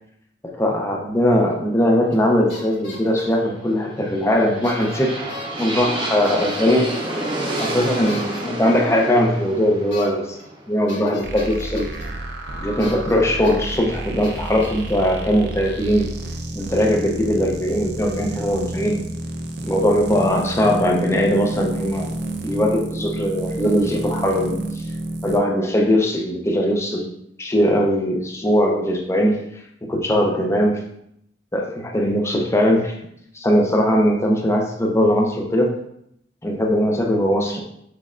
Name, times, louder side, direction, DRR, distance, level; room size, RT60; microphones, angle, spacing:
voice 1, 0.4-5.3 5.6-7.0 7.6-10.4 10.7-11.9 12.6-16.1 16.5-19.0 19.6-22.1 22.4-24.8 25.2-27.1 27.4-29.4 29.8-30.8 31.5-33.0 33.3-35.8 36.4-37.6, equal, 15° left, 1 dB, 0.6 m, -20 dB
sound 1, 2.1-2.2 2.5-3.4 4.6-5.0 5.3-5.6 6.2-6.6 7.5-8.4 9.9-10.1 10.4-10.5 10.9-12.0 12.8-13.1 13.4-13.8 14.2-14.9, left 2 dB, 85° left, 1.5 m, -38 dB
sound 2, 3.9-11.9, right 1 dB, 25° right, 0.8 m, -29 dB
sound 3, 11.2-25.4, right 1 dB, 60° right, 0.5 m, -30 dB
6.1 x 3.5 x 2.5 m, 0.74 s
head